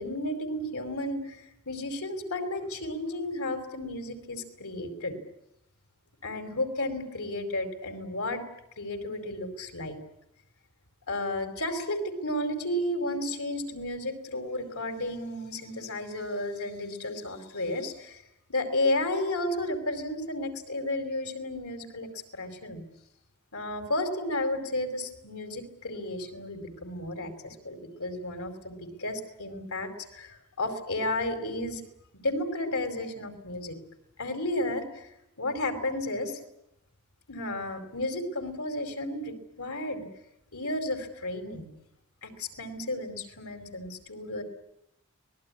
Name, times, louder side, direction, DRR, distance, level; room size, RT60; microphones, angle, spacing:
voice 1, 0.0-5.2 6.2-8.4 8.8-10.0 11.1-18.2 18.5-22.8 23.5-31.8 32.2-33.8 34.2-35.1 35.4-36.4 37.3-40.1 40.5-41.7 42.2-44.4, left 1 dB, 80° left, 6 dB, 4.7 m, -33 dB
25.0 x 20.0 x 9.8 m, 0.85 s
head